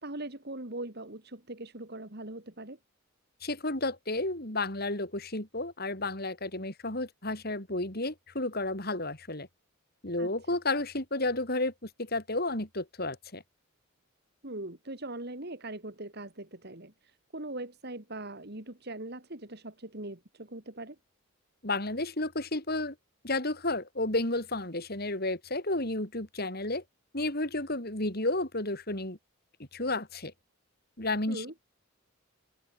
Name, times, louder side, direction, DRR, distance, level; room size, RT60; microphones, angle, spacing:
voice 1, 0.0-2.8 10.2-10.3 14.4-21.0 31.3-31.5, right 2 dB, 50° right, 2.7 m, -41 dB
voice 2, 3.4-9.5 10.0-13.4 21.6-22.9 23.2-26.8 27.1-29.2 29.7-30.3 31.0-31.4, left 2 dB, 45° left, 4.7 m, -32 dB
head